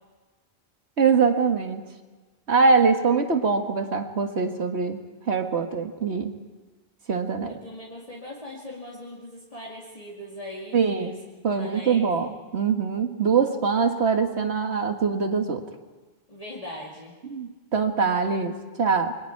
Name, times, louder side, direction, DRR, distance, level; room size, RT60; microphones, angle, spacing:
voice 1, 1.0-1.9 2.5-5.0 5.3-6.4 7.1-7.5 10.7-11.1 11.4-15.6 17.2-19.1, right 5 dB, 80° right, 5 dB, 1.9 m, -23 dB
voice 2, 7.5-11.1 11.5-12.1 16.3-17.1, left 1 dB, 35° left, -5 dB, 2.5 m, -40 dB
28.5 x 22.5 x 4.6 m, 1.3 s
omnidirectional pair, 1.1 m